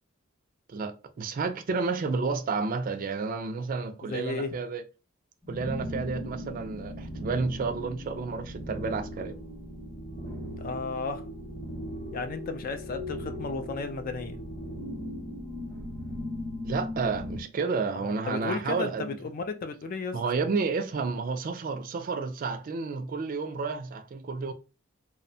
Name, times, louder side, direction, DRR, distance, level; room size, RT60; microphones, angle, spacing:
voice 1, 0.7-4.8 5.5-9.4 16.6-19.2 20.1-24.5, right 4 dB, 40° right, 0.3 m, -31 dB
voice 2, 4.0-4.6 10.6-11.3 12.1-14.4 18.3-20.2, left 4 dB, 40° left, 0.3 m, -34 dB
sound 1, 5.4-17.4, left 1 dB, 15° left, 0.9 m, -38 dB
2.7 x 2.1 x 2.6 m
head